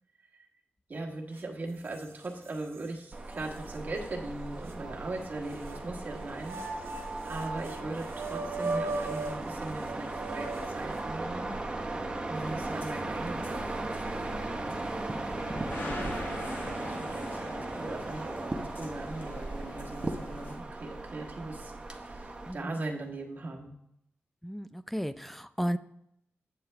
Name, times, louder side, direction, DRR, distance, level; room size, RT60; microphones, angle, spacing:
voice 1, 0.9-11.6 12.3-14.8 16.1-23.7, right 2 dB, 40° right, 0 dB, 1.4 m, -40 dB
sound 1, 1.4-1.5 1.9-2.9 3.5-3.6 4.7-5.8 6.4-11.3, right 3 dB, 75° right, 1.5 m, -38 dB
sound 2, 3.1-22.5, right 2 dB, 20° right, 0.8 m, -37 dB
sound 3, 12.3-20.6, left 2 dB, 50° left, 1.8 m, -44 dB
voice 2, 24.4-25.8, equal, 5° left, 13 dB, 0.3 m, -33 dB
9.0 x 7.5 x 3.4 m, 0.78 s
wide cardioid pair, 115°, 4 cm